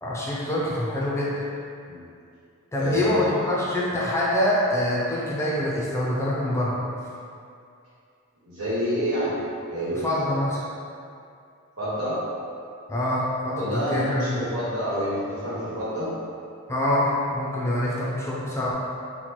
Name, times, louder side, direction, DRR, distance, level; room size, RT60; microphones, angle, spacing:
voice 1, 0.0-1.4 2.7-6.8 9.9-10.6 12.9-14.4 16.7-18.8, left 1 dB, 15° left, -7 dB, 0.4 m, -25 dB
voice 2, 2.8-3.3 8.4-9.3 9.7-10.0 11.8-12.2 13.5-16.1, equal, 80° right, -10 dB, 1.4 m, -27 dB
4.3 x 2.2 x 3.0 m, 2.4 s
head